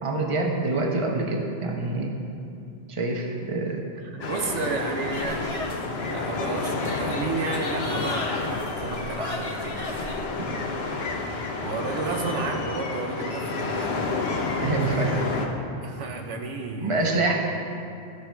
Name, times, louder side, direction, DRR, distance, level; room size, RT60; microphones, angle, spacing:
voice 1, 0.0-2.1 2.9-3.8 10.4-10.6 14.6-15.1 16.8-17.3, right 2 dB, 30° right, 1 dB, 1.0 m, -26 dB
voice 2, 4.1-5.5 6.1-9.8 10.1-10.9 11.6-14.0 14.9-15.2 15.8-17.2, right 3 dB, 90° right, 3 dB, 1.2 m, -32 dB
sound 1, 4.2-15.5, left 3 dB, 65° left, 1.1 m, -30 dB
sound 2, 5.1-10.3, left 2 dB, 30° left, 0.9 m, -35 dB
13.5 x 6.0 x 4.6 m, 2.5 s
omnidirectional pair, 1.2 m